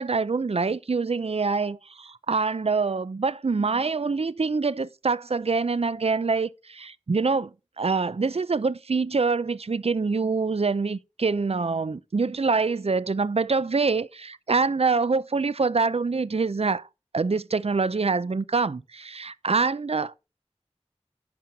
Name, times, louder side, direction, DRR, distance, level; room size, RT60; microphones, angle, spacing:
voice 1, 0.0-7.5 7.8-16.9 17.1-20.1, right 4 dB, 60° right, 0.5 m, -25 dB
10.5 x 5.5 x 4.5 m
wide cardioid pair, 40°, 12 cm